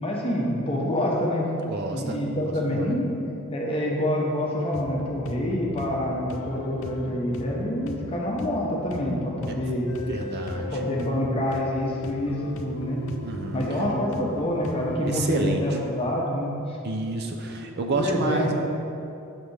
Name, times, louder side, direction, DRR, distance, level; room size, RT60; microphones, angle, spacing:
voice 1, 0.0-1.5 1.9-3.2 3.5-9.9 10.7-13.1 13.5-16.6 17.6-17.7 18.0-18.5, left 1 dB, 25° left, -3 dB, 0.8 m, -27 dB
voice 2, 1.6-2.2 2.7-2.9 10.1-10.8 13.2-13.6 15.1-15.8 16.8-18.5, right 2 dB, 45° right, 3 dB, 0.4 m, -29 dB
sound 1, 4.7-15.3, left 2 dB, 60° left, 0.4 m, -40 dB
sound 2, 9.9-16.2, left 3 dB, 85° left, 0.7 m, -38 dB
6.2 x 3.3 x 5.4 m, 2.8 s
head